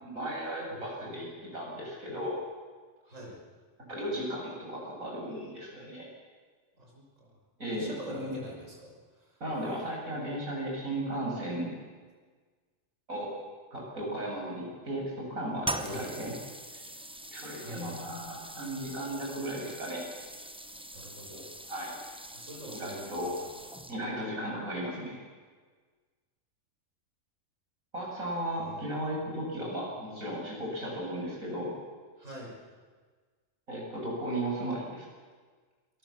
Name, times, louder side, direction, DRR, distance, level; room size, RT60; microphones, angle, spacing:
voice 1, 0.0-1.3 1.5-2.4 3.9-6.1 7.6-8.3 9.4-11.7 13.1-13.3 13.7-16.3 16.7-16.8 17.3-20.1 21.7-22.0 22.7-23.4 23.9-25.2 27.9-31.7 33.7-35.1, right 1 dB, 80° right, -3 dB, 8.4 m, -35 dB
voice 2, 3.0-3.4 6.8-7.4 7.7-9.4 15.8-16.1 17.6-18.0 20.9-21.5 22.3-23.5 28.6-28.8 32.2-32.5, equal, 65° right, -1 dB, 6.5 m, -45 dB
sound 1, 15.6-24.2, right 1 dB, 5° right, 0.9 m, -42 dB
28.5 x 19.0 x 7.4 m, 1.5 s
omnidirectional pair, 1.4 m